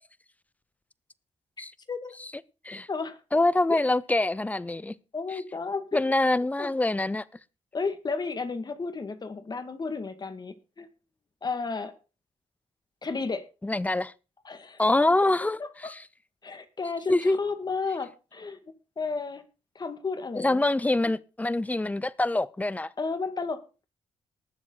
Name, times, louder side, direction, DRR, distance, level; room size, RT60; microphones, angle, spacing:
voice 1, 1.6-2.1 2.9-3.2 3.7-3.8 5.1-6.0 6.6-6.7 7.7-10.9 11.4-11.9 13.0-13.4 14.4-14.8 15.6-15.9 16.4-18.6 19.0-19.4 19.8-20.6 23.0-23.8, left 4 dB, 35° left, 2.1 m, -33 dB
voice 2, 3.3-4.9 5.9-7.2 13.6-14.1 14.8-16.0 17.1-17.4 20.4-22.9, left 2 dB, 10° left, 0.7 m, -25 dB
19.0 x 7.4 x 4.0 m
cardioid pair, 95°, 12 cm